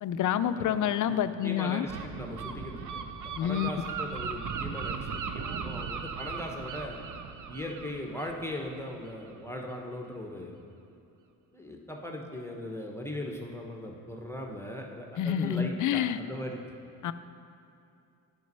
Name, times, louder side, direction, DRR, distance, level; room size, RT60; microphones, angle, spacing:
voice 1, 0.0-1.9 3.4-3.7 15.2-16.2 17.0-17.1, left 9 dB, 45° left, 12 dB, 0.5 m, -28 dB
voice 2, 0.5-7.0 7.5-10.5 11.5-16.6, left 1 dB, 5° left, 1 dB, 1.0 m, -39 dB
Gull seagull, 1.9-9.4, right 6 dB, 45° right, 0.7 m, -38 dB
9.3 x 5.2 x 5.5 m, 2.7 s
supercardioid pair, 70°, 43 cm